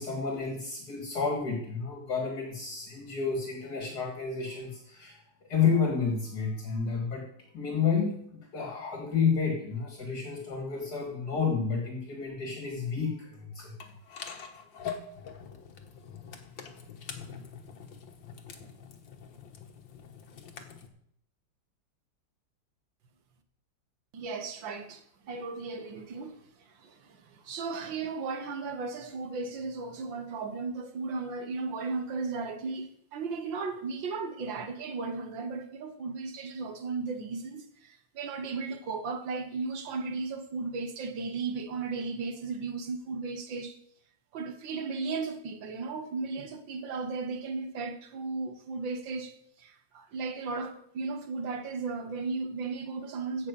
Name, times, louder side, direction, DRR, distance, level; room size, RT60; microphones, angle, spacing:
voice 1, 0.0-7.3 7.5-13.8 15.2-15.3, left 5 dB, 60° left, 2.5 m, -30 dB
sound 1, 13.8-20.9, left 7 dB, 80° left, 2.0 m, -44 dB
voice 2, 24.1-43.8 44.3-53.5, right 4 dB, 80° right, 2.0 m, -35 dB
16.0 x 5.8 x 6.9 m
omnidirectional pair, 2.0 m